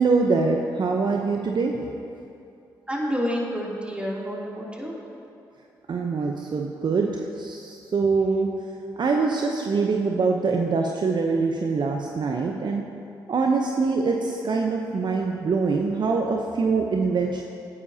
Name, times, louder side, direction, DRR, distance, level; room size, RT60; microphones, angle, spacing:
voice 1, 0.0-1.8 5.9-8.5 9.0-12.8 13.3-17.4, right 4 dB, 50° right, 1 dB, 0.9 m, -24 dB
voice 2, 2.9-4.9, equal, 10° right, -4 dB, 3.1 m, -29 dB
16.5 x 10.0 x 2.9 m, 2.6 s
hypercardioid pair, 40°, 10 cm